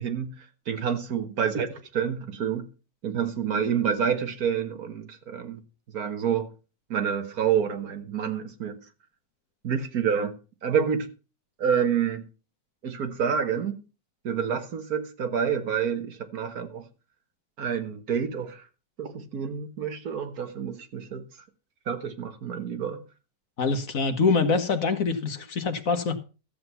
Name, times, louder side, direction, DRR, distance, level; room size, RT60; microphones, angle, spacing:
voice 1, 0.0-1.7 1.9-2.7 3.0-5.6 5.9-6.5 6.9-8.8 9.6-11.1 11.6-12.2 12.8-13.8 14.2-16.8 17.6-18.6 19.0-21.2 21.9-23.0, right 7 dB, 60° right, 1.6 m, -28 dB
voice 2, 23.6-26.2, left 4 dB, 55° left, 1.5 m, -24 dB
14.0 x 7.8 x 5.5 m
omnidirectional pair, 1.9 m